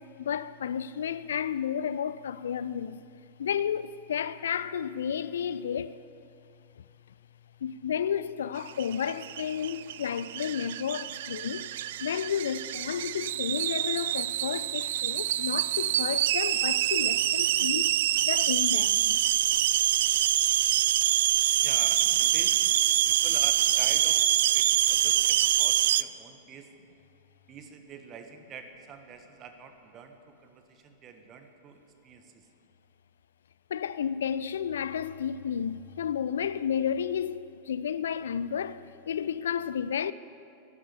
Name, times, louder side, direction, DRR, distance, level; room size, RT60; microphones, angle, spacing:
voice 1, 0.0-3.0 3.4-6.0 7.6-11.7 12.0-17.9 18.2-19.2 33.7-40.1, left 8 dB, 65° left, 0.4 m, -32 dB
sound 1, 8.7-26.0, right 13 dB, 55° right, 0.3 m, -25 dB
voice 2, 21.6-26.7 27.5-32.5, right 6 dB, 30° right, 1.5 m, -46 dB
11.5 x 11.0 x 9.8 m
figure-of-eight pair, 90°, 0 cm